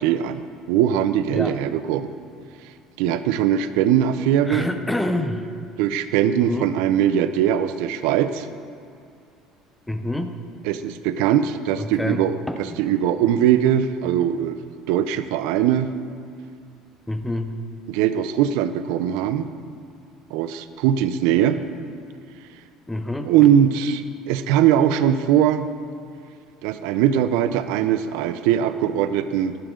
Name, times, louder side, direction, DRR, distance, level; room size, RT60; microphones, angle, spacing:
voice 1, 0.0-2.1 3.0-4.7 5.8-8.5 10.6-14.6 14.9-15.9 17.9-19.5 20.3-21.6 23.3-25.7 26.6-29.6, right 10 dB, 75° right, 11 dB, 0.5 m, -21 dB
voice 2, 4.4-5.4 6.4-6.7 9.9-10.3 11.8-12.8 17.1-17.5 22.9-23.3, left 1 dB, 5° left, 7 dB, 0.5 m, -27 dB
14.0 x 11.5 x 3.8 m, 2.4 s
cardioid pair, 170°, 0 cm